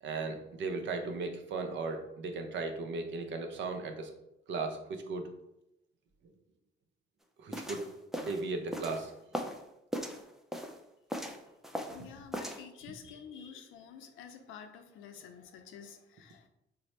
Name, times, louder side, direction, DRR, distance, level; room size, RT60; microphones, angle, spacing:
voice 1, 0.0-4.1 4.5-5.3 7.4-7.8 8.2-9.1, right 3 dB, 70° right, 5 dB, 0.6 m, -36 dB
sound 1, 7.5-9.6 9.9-10.8 11.1-12.0 12.3-12.6, equal, ahead, 0.4 m, -38 dB
voice 2, 11.9-16.5, left 7 dB, 85° left, 6 dB, 0.5 m, -49 dB
4.1 x 2.0 x 3.1 m, 0.87 s
cardioid pair, 90°, 20 cm